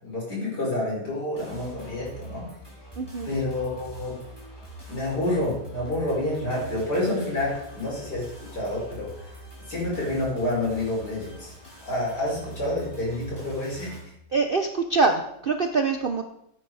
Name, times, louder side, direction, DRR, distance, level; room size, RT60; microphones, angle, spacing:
voice 1, 0.0-2.5 3.2-4.2 4.9-9.1 9.7-11.5 11.9-13.9, left 1 dB, 55° left, -4 dB, 5.7 m, -28 dB
sound 1, 1.3-14.0, right 2 dB, 10° left, 3.8 m, -43 dB
voice 2, 3.0-3.3 14.3-16.2, right 4 dB, 85° right, 6 dB, 0.4 m, -24 dB
14.5 x 9.0 x 4.8 m, 0.77 s
omnidirectional pair, 2.1 m